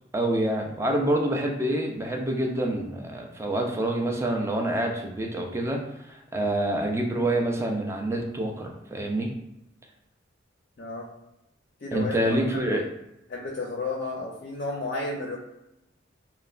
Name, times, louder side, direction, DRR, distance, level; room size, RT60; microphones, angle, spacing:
voice 1, 0.1-9.3 11.9-12.8, right 1 dB, 15° right, 1 dB, 0.3 m, -27 dB
voice 2, 10.8-11.1 11.8-12.6 13.3-15.4, left 3 dB, 45° left, -2 dB, 0.5 m, -32 dB
3.1 x 2.1 x 2.4 m, 0.87 s
head